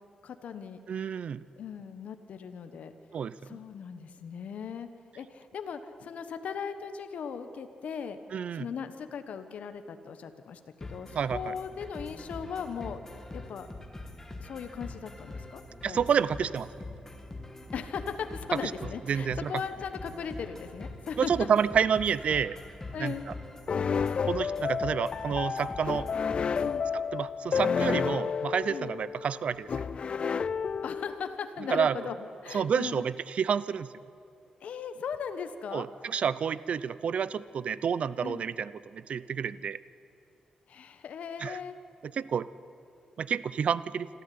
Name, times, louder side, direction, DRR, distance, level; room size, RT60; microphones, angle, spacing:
voice 1, 0.2-0.8 1.5-2.9 3.4-4.9 5.1-8.2 8.5-10.6 10.9-13.7 14.4-16.0 17.7-21.3 22.9-23.3 26.6-26.8 28.7-28.9 30.8-33.0 34.6-35.9 38.2-38.4 40.7-41.7, left 6 dB, 75° left, 9 dB, 1.4 m, -38 dB
voice 2, 0.9-1.4 3.1-3.6 8.3-8.7 11.1-11.5 15.8-16.7 18.6-18.7 19.1-19.5 21.2-22.6 23.0-23.1 24.3-26.1 26.9-29.8 31.7-31.9 32.5-33.9 35.7-39.8 41.4-41.6 42.1-42.5 43.2-44.1, right 7 dB, 60° right, 17 dB, 0.6 m, -29 dB
sound 1, 10.8-26.8, left 2 dB, 20° left, 2.4 m, -44 dB
sound 2, 23.7-31.4, left 6 dB, 50° left, 0.5 m, -31 dB
26.5 x 13.0 x 9.6 m, 2.6 s
cardioid pair, 105°, 2 cm